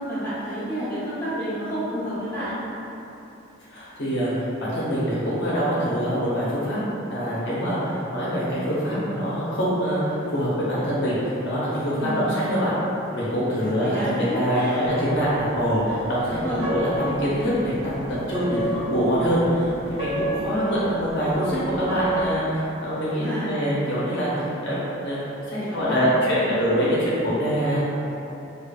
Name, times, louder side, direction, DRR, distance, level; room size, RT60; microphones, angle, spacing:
voice 1, 0.0-2.6 12.0-12.4 13.6-15.0 16.3-16.7 18.5-18.7 23.2-23.5 25.6-26.6, equal, 10° left, -13 dB, 1.2 m, -30 dB
voice 2, 3.7-6.8 7.1-12.7 13.1-18.6 18.9-27.9, equal, 60° left, -8 dB, 0.7 m, -24 dB
sound 1, 14.8-22.3, right 1 dB, 30° right, 0.3 m, -33 dB
4.9 x 2.3 x 2.3 m, 3.0 s
head